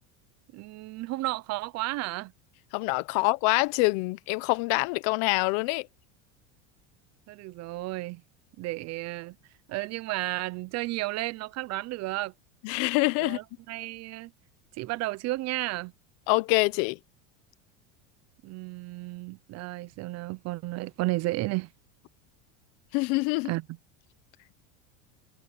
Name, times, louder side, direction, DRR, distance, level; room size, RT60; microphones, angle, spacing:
voice 1, 0.5-2.3 7.3-8.2 8.6-9.4 9.7-12.3 13.2-14.3 14.8-15.9 18.4-21.7 23.4-23.6, right 19 dB, 45° right, 0.7 m, -33 dB
voice 2, 2.7-5.9 12.6-13.4 16.3-17.0 22.9-23.5, left 24 dB, 60° left, 1.3 m, -25 dB
supercardioid pair, 135°, 38 cm